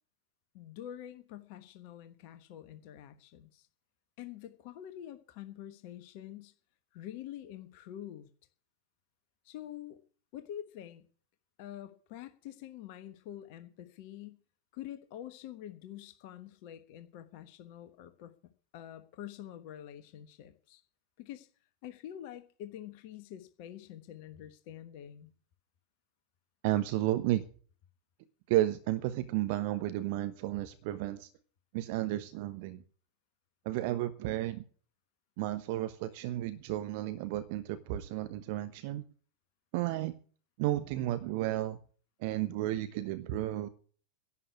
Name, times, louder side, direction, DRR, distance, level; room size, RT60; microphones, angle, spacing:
voice 1, 0.5-3.7 4.2-6.5 6.9-8.3 9.4-10.0 10.3-11.0 11.6-14.4 14.7-18.3 18.7-20.8 21.2-21.5 21.8-25.3, left 11 dB, 45° left, 9 dB, 1.2 m, -46 dB
voice 2, 26.6-27.4 28.5-31.3 31.7-32.8 33.6-34.6 35.4-39.0 39.7-40.1 40.6-41.8 42.2-43.7, right 14 dB, 45° right, 11 dB, 1.1 m, -32 dB
11.5 x 8.4 x 9.6 m, 0.43 s
figure-of-eight pair, 90°, 0 cm